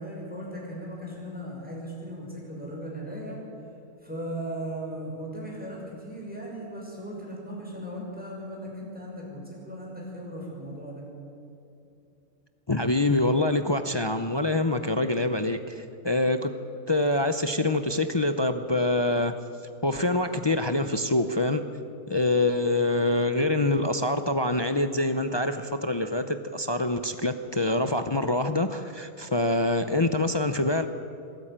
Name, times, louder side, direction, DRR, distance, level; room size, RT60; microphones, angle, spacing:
voice 1, 0.0-3.4 4.0-11.0, right 1 dB, 5° right, -3 dB, 5.9 m, -37 dB
voice 2, 12.7-16.5 16.9-19.4 19.8-21.6 22.1-30.9, left 2 dB, 40° left, 8 dB, 0.3 m, -25 dB
22.5 x 13.5 x 8.7 m, 2.7 s
omnidirectional pair, 1.5 m